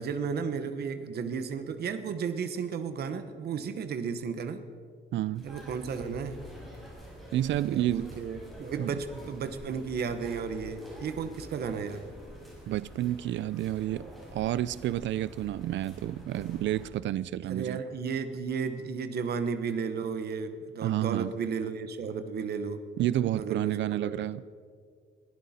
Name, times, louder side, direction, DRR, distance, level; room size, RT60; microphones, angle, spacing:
voice 1, 0.0-4.6 5.4-6.4 7.7-12.0 17.5-22.8 23.3-24.3, right 6 dB, 55° right, 1.0 m, -34 dB
voice 2, 5.1-5.5 7.3-8.1 8.8-8.9 12.7-14.1 14.3-17.8 20.8-21.3 23.0-24.4, right 13 dB, 80° right, 0.4 m, -30 dB
sound 1, 5.3-16.9, equal, ahead, 5.3 m, -47 dB
22.0 x 15.5 x 4.2 m
wide cardioid pair, 170°, 19 cm